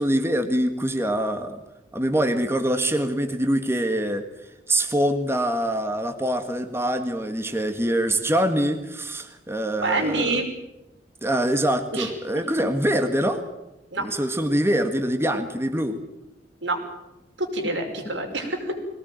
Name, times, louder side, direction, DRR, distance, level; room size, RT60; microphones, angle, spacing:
voice 1, 0.0-1.6 1.9-4.3 4.7-10.4 11.2-13.4 14.0-16.0, right 1 dB, 15° right, 6 dB, 1.7 m, -24 dB
voice 2, 9.8-10.5 11.9-12.1 13.9-14.1 16.6-16.8 17.4-18.7, right 2 dB, 85° right, 3 dB, 5.6 m, -26 dB
22.0 x 18.5 x 9.1 m, 0.96 s
head